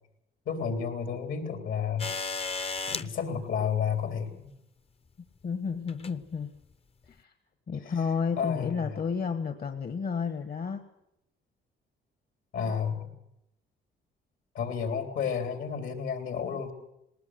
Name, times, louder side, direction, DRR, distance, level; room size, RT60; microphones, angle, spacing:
voice 1, 0.5-2.1 2.9-4.5 7.8-8.0 8.4-9.0 12.5-13.1 14.5-16.7, left 7 dB, 75° left, 5 dB, 3.9 m, -31 dB
sound 1, 2.0-3.1 4.5-4.6 5.9-6.2 7.1-7.2, left 4 dB, 30° left, 0.8 m, -33 dB
voice 2, 5.4-6.5 7.2-7.3 7.7-10.8, left 6 dB, 50° left, 8 dB, 1.4 m, -31 dB
19.5 x 19.0 x 8.1 m, 0.82 s
cardioid pair, 90°, 20 cm